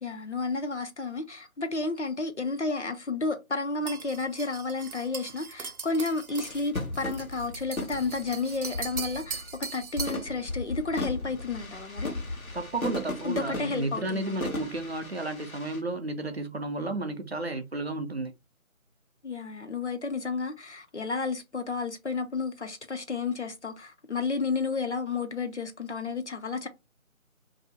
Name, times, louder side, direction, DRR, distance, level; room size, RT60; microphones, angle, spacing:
voice 1, 0.0-12.1 13.2-14.3 19.2-26.7, left 3 dB, 55° left, 0.5 m, -31 dB
sound 1, 3.9-10.3, right 5 dB, 90° right, 0.7 m, -40 dB
sound 2, 6.3-9.6 10.0-15.8, left 2 dB, 80° left, 1.1 m, -36 dB
voice 2, 12.5-18.3, right 2 dB, 50° right, 0.4 m, -32 dB
2.7 x 2.0 x 3.9 m
figure-of-eight pair, 160°, 42 cm